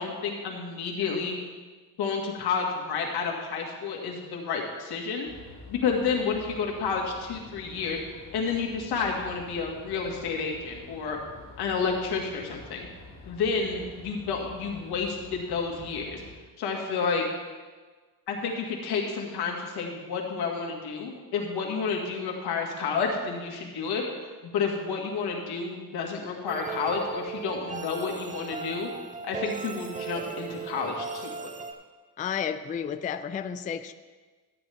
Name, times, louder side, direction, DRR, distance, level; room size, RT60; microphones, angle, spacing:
voice 1, 0.0-1.4 2.0-5.3 5.7-8.0 8.3-11.2 11.6-12.9 13.3-16.2 16.6-17.3 18.3-28.9 29.2-31.3, left 5 dB, 80° left, 0 dB, 2.0 m, -30 dB
sound 1, 5.3-16.3, left 3 dB, 45° left, 3.3 m, -48 dB
sound 2, 26.5-31.7, right 6 dB, 20° right, 0.8 m, -37 dB
voice 2, 32.2-33.9, left 8 dB, 20° left, 11 dB, 0.3 m, -32 dB
12.5 x 9.2 x 3.5 m, 1.4 s
cardioid pair, 105°, 39 cm